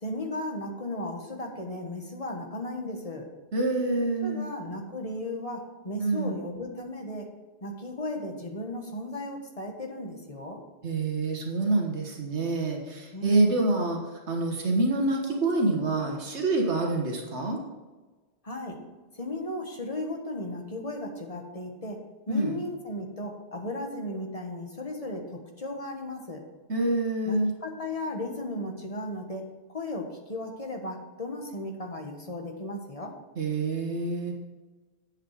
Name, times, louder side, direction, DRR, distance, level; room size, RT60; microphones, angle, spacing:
voice 1, 0.0-3.2 4.2-7.3 7.6-10.6 13.1-13.6 18.4-18.8 19.1-22.0 22.3-26.4 27.2-29.4 29.7-33.1, left 1 dB, 30° left, 2 dB, 1.6 m, -35 dB
voice 2, 3.5-4.4 6.0-6.4 10.8-17.6 22.3-22.6 26.7-27.5 33.4-34.3, right 2 dB, 80° right, 1 dB, 1.7 m, -26 dB
10.5 x 7.7 x 5.0 m, 1.2 s
omnidirectional pair, 1.1 m